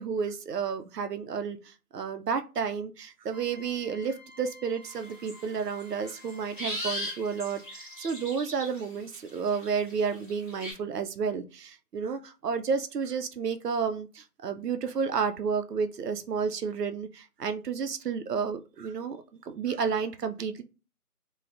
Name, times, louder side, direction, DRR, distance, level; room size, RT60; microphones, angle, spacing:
voice 1, 0.0-20.6, right 6 dB, 85° right, 8 dB, 0.6 m, -31 dB
sound 1, 3.3-8.5, left 3 dB, 40° right, 0.8 m, -53 dB
sound 2, 4.9-5.4 5.8-8.9 9.1-10.7, equal, 35° left, 1.0 m, -38 dB
3.4 x 2.2 x 2.4 m, 0.32 s
figure-of-eight pair, 170°, 46 cm